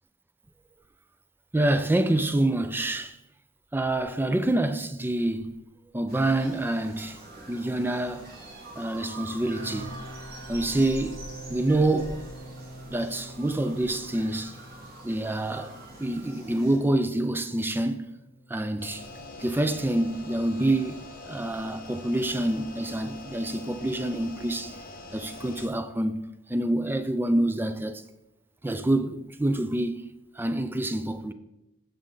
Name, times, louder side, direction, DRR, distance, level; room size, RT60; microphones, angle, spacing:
voice 1, 1.5-3.2 3.7-5.6 5.9-8.3 8.8-10.0 10.5-11.2 11.5-12.2 12.9-14.6 15.0-15.7 16.0-18.1 18.5-19.0 19.4-21.0 21.2-24.8 25.1-26.2 26.5-28.0 28.6-30.1 30.3-31.3, right 1 dB, 10° right, 0.4 m, -27 dB
sound 1, 6.1-16.8, right 1 dB, 45° right, 2.1 m, -45 dB
sound 2, 9.5-22.4, right 2 dB, 60° right, 1.2 m, -47 dB
sound 3, 18.8-25.7, left 2 dB, 40° left, 1.5 m, -44 dB
14.5 x 4.9 x 3.9 m
head